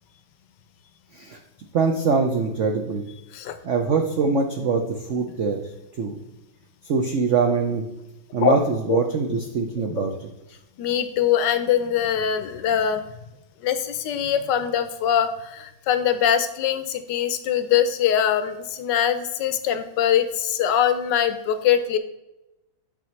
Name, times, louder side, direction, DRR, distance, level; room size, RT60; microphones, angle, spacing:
voice 1, 1.7-3.0 3.6-5.6 6.0-6.2 6.8-7.9 8.3-10.3, right 4 dB, 90° right, 4 dB, 0.6 m, -23 dB
voice 2, 10.8-13.0 13.6-22.0, left 9 dB, 70° left, 10 dB, 1.1 m, -22 dB
8.8 x 6.0 x 3.1 m, 0.94 s
omnidirectional pair, 2.2 m